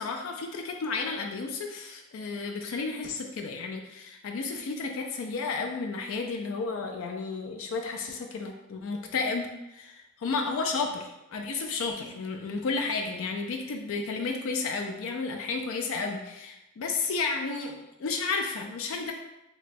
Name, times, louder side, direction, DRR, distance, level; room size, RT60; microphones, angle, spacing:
voice 1, 0.0-9.4 9.7-11.0 11.3-19.1, left 4 dB, 65° left, 3 dB, 0.4 m, -32 dB
3.0 x 2.2 x 4.1 m, 0.94 s
head